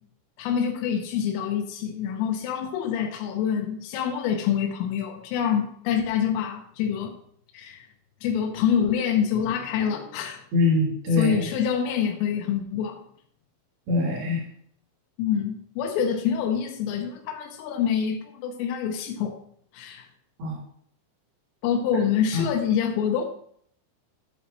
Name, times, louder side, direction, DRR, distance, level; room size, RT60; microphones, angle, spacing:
voice 1, 0.4-7.2 7.5-7.9 8.2-10.4 11.2-13.0 15.2-19.4 19.7-20.1 21.6-23.2, left 8 dB, 85° left, 2 dB, 3.5 m, -26 dB
voice 2, 10.5-11.5 13.9-14.4 20.4-20.6 22.0-22.5, left 3 dB, 55° right, -3 dB, 4.6 m, -24 dB
14.5 x 8.2 x 3.1 m, 0.64 s
omnidirectional pair, 5.7 m